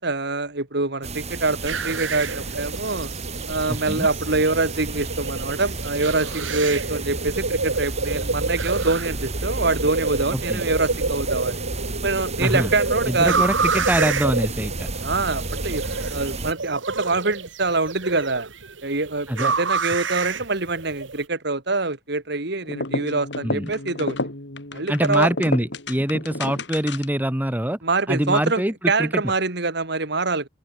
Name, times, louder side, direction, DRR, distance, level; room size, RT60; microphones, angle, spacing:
voice 1, 0.0-3.1 3.5-11.6 12.0-13.4 15.0-15.8 16.1-18.5 18.8-24.2 24.7-25.3 27.8-30.5, right 3 dB, 60° right, 2.8 m, -25 dB
sound 1, 1.0-16.5, right 2 dB, 35° right, 3.1 m, -32 dB
sound 2, 1.6-21.2, right 4 dB, 85° right, 2.2 m, -29 dB
voice 2, 3.7-4.1 10.3-10.6 12.4-12.7 13.1-14.9 19.3-19.5 23.4-23.7 24.9-27.8 28.1-28.7 29.0-29.2, right 1 dB, 10° right, 1.4 m, -24 dB
sound 3, 22.6-27.3, left 2 dB, 65° left, 4.7 m, -31 dB
open air
head